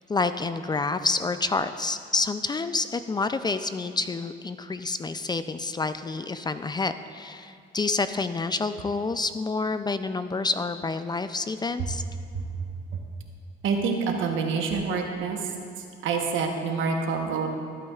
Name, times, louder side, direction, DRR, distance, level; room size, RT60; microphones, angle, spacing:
voice 1, 0.1-12.0, left 3 dB, 20° left, 11 dB, 0.3 m, -28 dB
voice 2, 13.6-15.4 16.0-17.5, right 5 dB, 85° right, 3 dB, 1.1 m, -27 dB
14.0 x 8.5 x 2.4 m, 2.4 s
cardioid pair, 90°, 20 cm